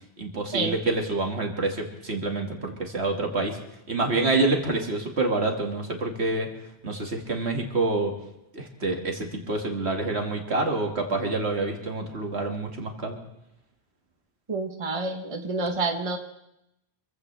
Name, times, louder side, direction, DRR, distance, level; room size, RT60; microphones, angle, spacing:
voice 1, 0.2-3.6 3.9-6.5 6.8-8.1 8.5-13.2, right 2 dB, 75° right, 2 dB, 2.4 m, -27 dB
voice 2, 14.5-16.2, right 3 dB, 30° right, 5 dB, 1.2 m, -28 dB
26.5 x 15.5 x 3.4 m, 0.83 s
omnidirectional pair, 1.1 m